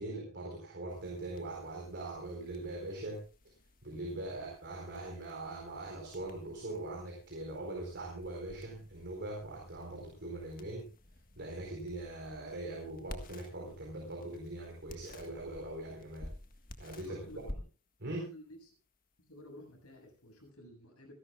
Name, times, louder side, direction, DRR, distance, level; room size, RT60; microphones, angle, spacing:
voice 1, 0.0-3.2 3.8-10.9 11.4-16.3 16.8-17.3 18.0-18.3, right 2 dB, 55° right, -1 dB, 4.3 m, -41 dB
sound 1, 0.9-20.5, left 1 dB, 40° left, 1.7 m, -53 dB
voice 2, 17.0-17.6 18.2-18.7 19.2-21.1, left 1 dB, 85° left, 2 dB, 7.4 m, -53 dB
27.0 x 12.0 x 2.4 m, 0.35 s
head